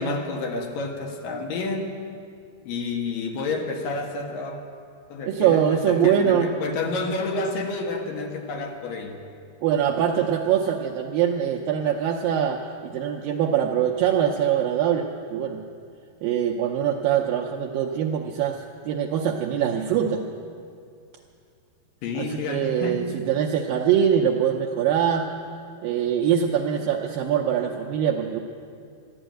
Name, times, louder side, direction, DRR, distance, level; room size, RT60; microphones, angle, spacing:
voice 1, 0.0-2.0 2.6-4.6 5.1-9.2 22.0-23.1, left 3 dB, 65° left, 3 dB, 2.6 m, -29 dB
voice 2, 5.3-6.5 9.6-15.6 16.2-20.2 22.2-25.3 25.8-28.4, right 9 dB, 90° right, 1 dB, 2.0 m, -23 dB
13.5 x 11.0 x 9.0 m, 2.3 s
omnidirectional pair, 4.9 m